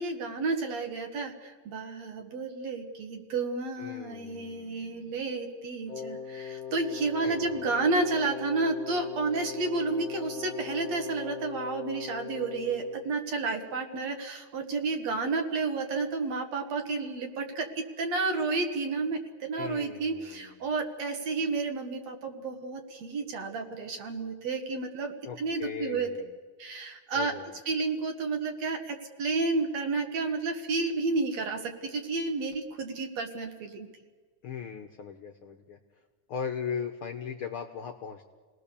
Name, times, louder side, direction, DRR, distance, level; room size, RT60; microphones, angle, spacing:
voice 1, 0.0-26.1 26.6-27.3 27.7-33.9, right 3 dB, 65° right, 5 dB, 2.8 m, -31 dB
voice 2, 3.8-5.1 7.2-7.9 19.6-20.6 25.2-26.3 27.1-27.6 34.4-35.8 36.3-38.3, left 7 dB, 65° left, 5 dB, 1.4 m, -39 dB
Wind instrument woodwind instrument, 5.9-13.2, left 8 dB, 30° left, 1.3 m, -40 dB
28.5 x 18.5 x 7.0 m, 1.5 s
omnidirectional pair, 3.4 m